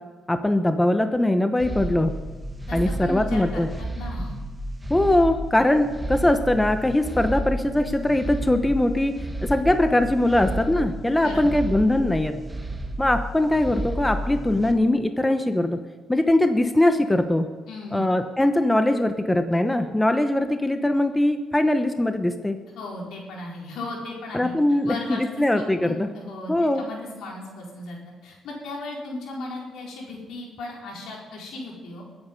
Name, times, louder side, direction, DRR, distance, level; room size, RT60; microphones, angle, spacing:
voice 1, 0.3-2.1 2.7-3.7 4.9-9.2 9.4-12.3 13.0-15.8 16.1-17.5 17.9-22.6 24.3-26.1 26.5-26.8, left 1 dB, 10° left, 7 dB, 0.9 m, -21 dB
sound 1, 1.6-14.7, right 1 dB, 15° right, 1.5 m, -32 dB
voice 2, 2.7-4.3 11.2-11.6 17.7-18.2 22.7-24.5 24.9-28.0 28.2-32.0, left 2 dB, 80° left, -2 dB, 4.5 m, -36 dB
22.0 x 9.0 x 5.3 m, 1.3 s
cardioid pair, 90°, 0 cm